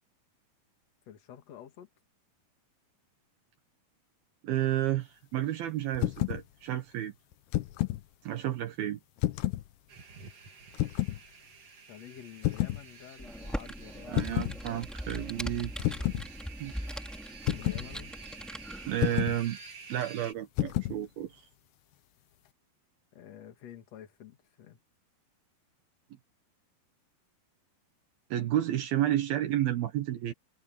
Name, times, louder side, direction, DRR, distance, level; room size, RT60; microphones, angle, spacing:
voice 1, 1.1-1.9 11.9-14.4 17.5-18.2 23.1-24.8, left 10 dB, 50° left, 2.6 m, -49 dB
voice 2, 4.4-7.1 8.2-9.0 14.1-15.7 16.6-16.7 18.9-19.6 19.9-21.5 28.3-30.3, right 12 dB, 75° right, 3.1 m, -31 dB
sound 1, 5.9-6.4 7.3-8.0 9.2-9.7 10.7-11.2 12.4-12.8 14.1-14.6 15.8-16.3 17.5-17.9 19.0-19.4 20.6-21.0, left 16 dB, 90° left, 3.1 m, -29 dB
sound 2, 9.9-20.3, right 5 dB, 40° right, 3.4 m, -50 dB
Computer keyboard, 13.2-19.0, equal, ahead, 2.1 m, -40 dB
omnidirectional pair, 4.5 m